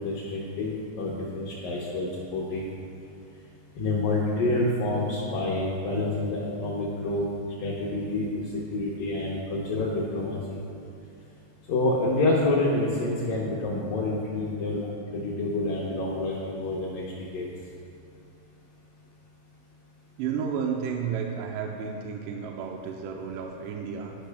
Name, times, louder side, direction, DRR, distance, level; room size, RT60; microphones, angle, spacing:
voice 1, 0.0-2.7 3.8-7.3 7.6-8.4 8.7-10.6 11.7-14.8 15.1-17.1 17.3-17.5, left 2 dB, 75° left, -4 dB, 2.0 m, -28 dB
voice 2, 20.2-24.2, right 6 dB, 80° right, 1 dB, 2.5 m, -32 dB
12.0 x 5.4 x 3.4 m, 2.8 s
omnidirectional pair, 5.1 m